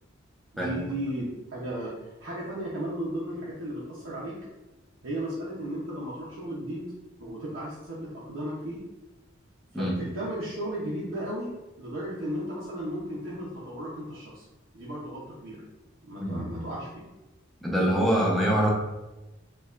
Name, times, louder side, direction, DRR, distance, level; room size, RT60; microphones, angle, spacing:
voice 1, 0.5-4.4 5.0-8.9 9.7-11.5 11.8-14.5 14.7-15.6 16.0-17.0, right 1 dB, 85° right, -7 dB, 0.7 m, -35 dB
voice 2, 16.2-16.6 17.6-18.7, equal, ahead, -4 dB, 0.7 m, -25 dB
4.6 x 2.3 x 2.4 m, 1.0 s
head